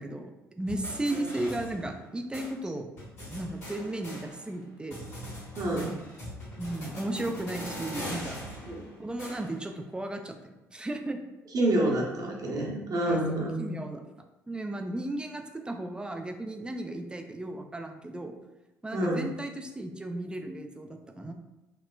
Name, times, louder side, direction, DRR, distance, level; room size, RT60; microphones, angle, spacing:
voice 1, 0.0-2.9 3.3-5.0 5.7-5.9 6.6-8.4 9.0-11.2 13.1-13.2 13.6-14.0 14.5-18.4 18.8-21.3, right 1 dB, 10° right, 5 dB, 0.4 m, -35 dB
sound 1, 0.7-2.1 2.3-2.5 3.0-4.6 4.9-9.7, equal, 85° left, 1.4 m, -41 dB
voice 2, 5.6-6.0 8.7-8.8 11.5-13.7 18.9-19.2, right 1 dB, 45° right, -2 dB, 0.8 m, -28 dB
3.1 x 2.9 x 2.2 m, 1.0 s
figure-of-eight pair, 50°, 8 cm